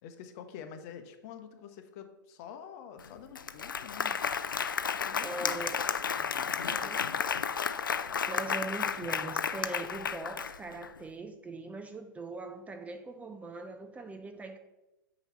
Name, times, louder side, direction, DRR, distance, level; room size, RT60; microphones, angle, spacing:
voice 1, 0.0-4.2 4.9-5.7 6.0-7.4, left 8 dB, 50° left, 7 dB, 0.8 m, -48 dB
Applause, 3.0-3.1 3.4-10.9, left 6 dB, 85° left, 0.4 m, -32 dB
voice 2, 5.2-5.8 6.7-7.0 8.3-14.6, right 3 dB, 15° right, 6 dB, 0.6 m, -41 dB
8.9 x 3.0 x 5.5 m, 0.99 s
figure-of-eight pair, 100°, 11 cm